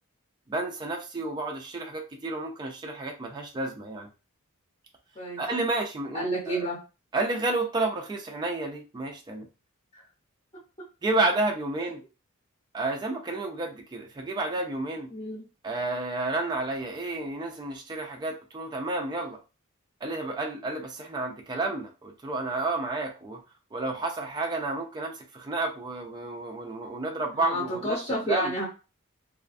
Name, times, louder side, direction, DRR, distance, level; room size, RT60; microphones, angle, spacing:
voice 1, 0.5-4.1 5.4-6.6 7.1-9.5 11.0-12.0 12.7-15.1 15.6-19.4 20.0-23.4 23.7-28.0 28.3-28.5, right 2 dB, 20° right, 2 dB, 0.3 m, -31 dB
voice 2, 6.1-6.8 11.8-11.9 15.1-15.4 27.3-28.6, right 1 dB, 25° left, -4 dB, 0.7 m, -30 dB
2.4 x 2.2 x 2.4 m, 0.31 s
head